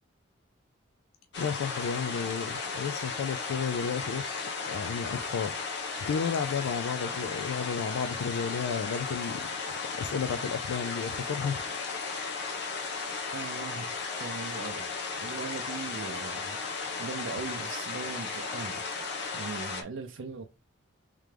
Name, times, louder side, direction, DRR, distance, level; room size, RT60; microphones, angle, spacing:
sound 1, 1.3-19.8, left 4 dB, 55° left, 1.0 m, -35 dB
voice 1, 1.4-9.5 10.0-11.6, left 6 dB, 90° left, 0.3 m, -33 dB
voice 2, 13.3-13.9 14.2-14.9 15.2-18.8 19.3-20.5, right 4 dB, 65° right, 0.5 m, -40 dB
3.6 x 3.3 x 3.2 m
head